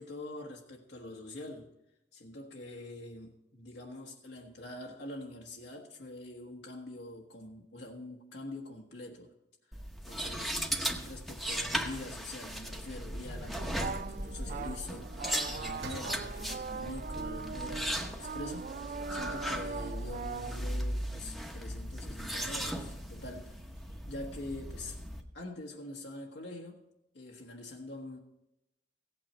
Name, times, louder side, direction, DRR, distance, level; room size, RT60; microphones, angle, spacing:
voice 1, 0.0-1.7 2.1-9.3 9.7-9.8 10.1-10.6 11.0-23.7 24.1-25.0 25.3-26.9 27.1-28.2, left 2 dB, 80° left, -1 dB, 1.3 m, -45 dB
sound 1, 9.7-25.2, equal, ahead, 0.9 m, -37 dB
sound 2, 12.8-18.0 18.5-18.6 18.9-21.0 21.5-22.1 22.7-22.8 23.1-23.2 23.6-24.2, right 3 dB, 70° right, 0.8 m, -51 dB
sound 3, 13.6-20.6, right 5 dB, 50° right, 0.3 m, -41 dB
16.0 x 8.7 x 4.3 m, 0.88 s
head